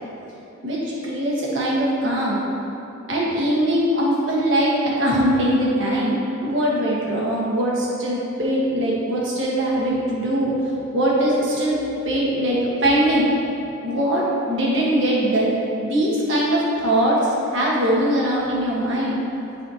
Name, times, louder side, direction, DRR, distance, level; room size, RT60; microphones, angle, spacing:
voice 1, 0.6-2.4 3.1-10.6 10.9-11.8 12.0-13.3 13.8-15.6 15.8-19.2, right 1 dB, 60° right, -5 dB, 1.4 m, -21 dB
11.0 x 4.1 x 2.9 m, 2.9 s
head